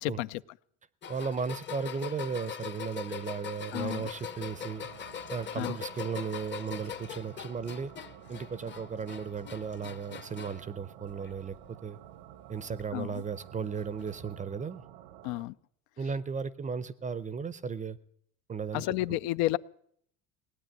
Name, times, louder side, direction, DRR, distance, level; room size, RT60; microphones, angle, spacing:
voice 1, 0.0-0.4 3.7-4.1 5.6-5.8 12.9-13.2 15.2-15.5 18.7-19.6, left 17 dB, 75° left, 16 dB, 0.6 m, -31 dB
sound 1, 1.0-10.7 11.1-11.7 12.8-12.9 14.0-14.1, left 8 dB, 25° left, 0.7 m, -42 dB
voice 2, 1.1-4.9 5.3-7.9 8.3-12.0 12.5-14.8 16.0-18.0 18.5-18.8, right 6 dB, 20° right, 18 dB, 0.5 m, -35 dB
sound 2, 3.7-15.4, right 12 dB, 80° right, 1.1 m, -52 dB
18.5 x 8.9 x 8.9 m, 0.67 s
cardioid pair, 130°, 41 cm